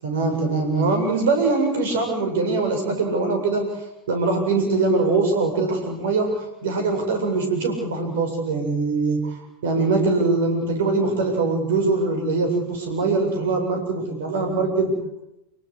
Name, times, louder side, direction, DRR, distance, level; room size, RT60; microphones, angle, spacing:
voice 1, 0.0-3.7 4.1-14.9, right 3 dB, 60° right, 4 dB, 7.9 m, -22 dB
29.0 x 18.5 x 8.2 m, 0.89 s
figure-of-eight pair, 90°, 0 cm